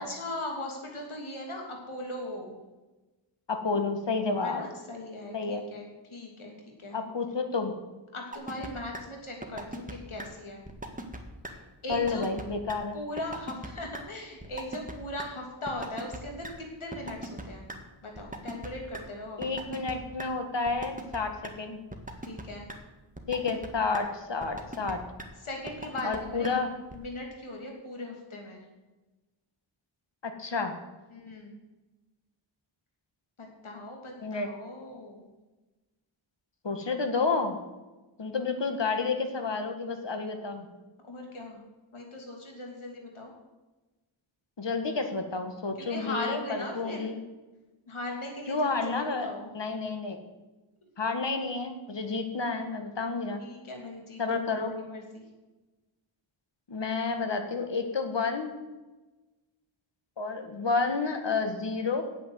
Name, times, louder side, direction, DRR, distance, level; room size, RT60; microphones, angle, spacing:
voice 1, 0.0-2.5 4.4-6.5 6.8-7.0 8.1-10.6 11.8-12.2 12.9-17.6 18.0-19.4 22.2-22.7 25.4-28.6 31.1-31.6 33.4-35.3 41.0-41.6 41.9-43.3 45.8-47.1 47.9-49.5 53.4-55.2, left 1 dB, 80° left, 1 dB, 3.0 m, -39 dB
voice 2, 3.5-4.6 5.3-5.6 6.9-7.7 11.9-13.0 19.4-21.8 23.3-25.0 26.0-26.7 30.2-30.7 34.2-34.5 36.6-37.6 38.2-40.7 44.6-47.2 48.5-49.3 49.5-50.2 51.0-53.5 54.2-54.7 56.7-58.5 60.2-62.0, left 4 dB, 60° left, 6 dB, 1.8 m, -30 dB
sound 1, 8.3-8.7 8.9-9.0 9.4-9.9 10.2-10.3 10.7-11.2 11.4-11.5 11.9-12.4 12.7-12.8 13.2-13.7 13.9-14.0 14.4-14.9 15.2-15.3 15.7-16.2 16.4-16.5 16.9-17.8 18.2-19.0 19.4-19.9 20.2-20.3 20.7-21.2 21.4-21.5 21.9-22.4 22.7-22.8 23.2-23.7 23.9-24.0 24.4-24.9 25.2-25.3 25.7-26.2 26.4-26.5 26.9-27.0, right 1 dB, 15° right, 1.8 m, -38 dB
8.8 x 8.6 x 8.2 m, 1.1 s
wide cardioid pair, 65°, 49 cm